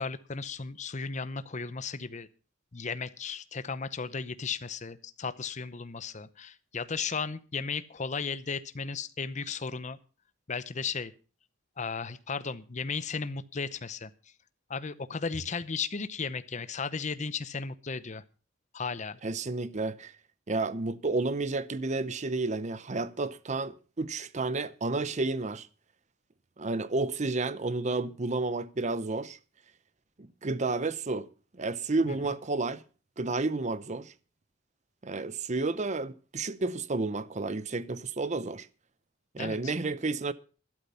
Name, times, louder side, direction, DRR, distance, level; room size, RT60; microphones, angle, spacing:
voice 1, 0.0-2.3 2.7-10.0 10.5-11.1 11.8-14.1 14.7-18.2 18.7-19.2 32.1-32.2 39.4-39.7, left 5 dB, 35° left, 0.8 m, -35 dB
voice 2, 19.2-20.1 20.5-25.7 26.6-29.4 30.2-31.3 31.6-32.8 33.2-34.1 35.0-38.7 39.3-40.3, right 3 dB, 35° right, 0.7 m, -31 dB
12.5 x 12.0 x 5.6 m
head